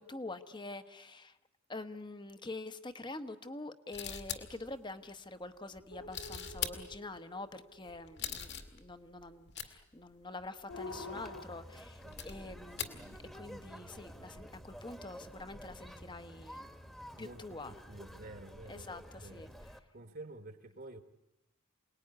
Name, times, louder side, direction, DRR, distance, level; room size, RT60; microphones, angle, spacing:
voice 1, 0.0-1.4 1.7-13.1 13.3-16.7 17.2-17.8 18.7-19.5, left 2 dB, 20° left, 1.1 m, -46 dB
sound 1, 3.9-4.8 5.7-7.2 7.9-9.7 10.1-10.2 10.4-10.5 11.1-11.4 12.0-13.0 13.3-13.8 14.4-15.4 15.7-15.8, left 8 dB, 50° left, 2.2 m, -42 dB
sound 2, 5.9-8.4 10.7-11.4, left 3 dB, 85° left, 2.2 m, -47 dB
Conversation, 10.7-19.8, equal, ahead, 1.3 m, -51 dB
voice 2, 12.8-13.4 17.2-18.9 19.1-19.4 19.9-21.0, right 2 dB, 45° right, 1.5 m, -50 dB
28.0 x 19.5 x 9.7 m
head